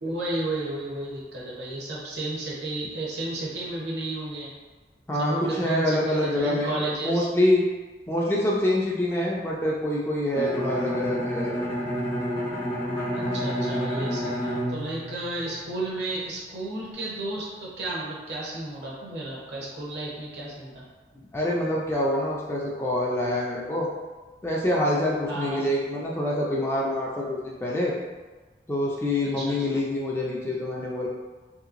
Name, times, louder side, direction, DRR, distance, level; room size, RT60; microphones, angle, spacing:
voice 1, 0.0-4.5 5.2-7.3 13.1-20.8 25.3-25.7 29.4-29.8, right 2 dB, 65° right, -4 dB, 0.8 m, -33 dB
voice 2, 5.1-7.6 8.1-11.6 13.1-13.4 21.3-23.9 24.4-27.9 28.7-31.1, left 1 dB, 15° left, -4 dB, 0.4 m, -26 dB
Bowed string instrument, 10.3-16.0, equal, 90° left, 0.8 m, -29 dB
3.1 x 2.9 x 2.5 m, 1.3 s
head